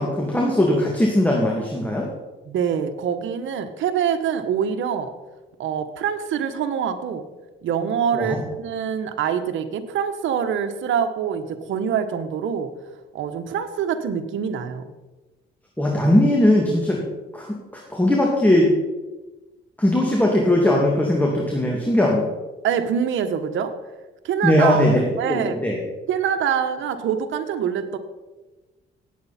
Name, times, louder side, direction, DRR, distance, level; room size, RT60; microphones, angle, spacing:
voice 1, 0.0-2.1 8.1-8.4 15.8-17.0 17.3-18.7 19.8-22.3 24.4-25.8, left 1 dB, 10° left, -1 dB, 2.5 m, -19 dB
voice 2, 2.5-5.1 5.6-7.2 7.6-12.7 13.1-14.9 22.6-23.8 24.2-25.6 26.1-28.0, right 8 dB, 75° right, 7 dB, 1.2 m, -25 dB
18.5 x 8.3 x 4.3 m, 1.1 s
cardioid pair, 90°, 20 cm